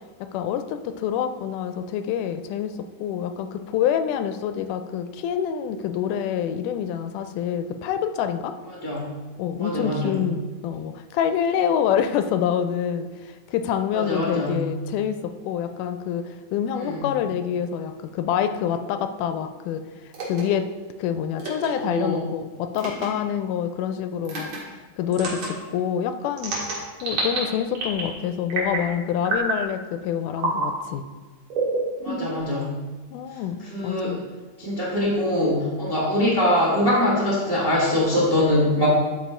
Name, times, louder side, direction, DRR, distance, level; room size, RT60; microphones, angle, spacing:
voice 1, 0.2-8.5 9.4-20.7 21.0-31.1 33.1-34.2, left 8 dB, 80° left, 9 dB, 2.0 m, -27 dB
voice 2, 9.6-10.2 13.9-14.6 16.7-17.0 21.8-22.2 32.0-32.7 33.7-34.1 34.6-38.9, left 1 dB, 35° right, -5 dB, 0.9 m, -23 dB
sound 1, 20.1-20.4 21.4-21.7 22.7-23.1 24.2-24.6 25.1-25.5 26.4-27.4 27.7-28.1 28.5-28.9 29.2-29.6 30.4-30.7 31.5-32.4, right 3 dB, 60° right, 2.9 m, -27 dB
11.5 x 4.4 x 4.3 m, 1.3 s
omnidirectional pair, 3.7 m